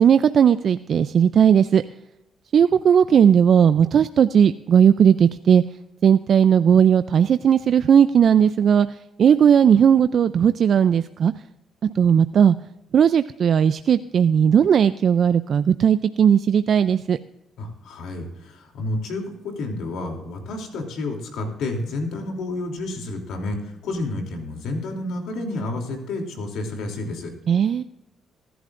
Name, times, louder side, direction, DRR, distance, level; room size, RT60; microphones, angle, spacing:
voice 1, 0.0-1.8 2.5-5.6 6.0-8.9 9.2-11.3 12.0-12.6 12.9-17.2 27.5-27.8, right 8 dB, 60° right, 12 dB, 0.4 m, -17 dB
voice 2, 17.6-27.3, left 2 dB, 80° left, 2 dB, 3.1 m, -30 dB
22.5 x 11.0 x 2.6 m, 0.92 s
cardioid pair, 90°, 0 cm